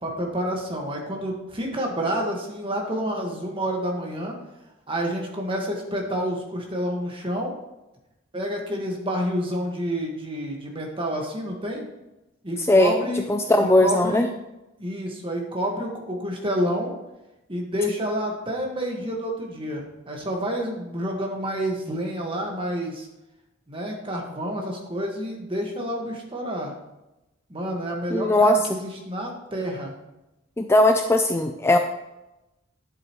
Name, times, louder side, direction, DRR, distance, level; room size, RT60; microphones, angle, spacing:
voice 1, 0.0-4.3 4.9-7.5 8.3-11.8 12.4-13.3 13.6-14.3 14.8-16.9 17.5-23.1 23.7-26.8 27.5-29.9, equal, 25° right, 1 dB, 1.6 m, -29 dB
voice 2, 12.7-14.3 28.1-28.6 30.6-31.8, left 1 dB, 15° left, 6 dB, 0.4 m, -19 dB
10.5 x 7.9 x 3.1 m, 0.95 s
head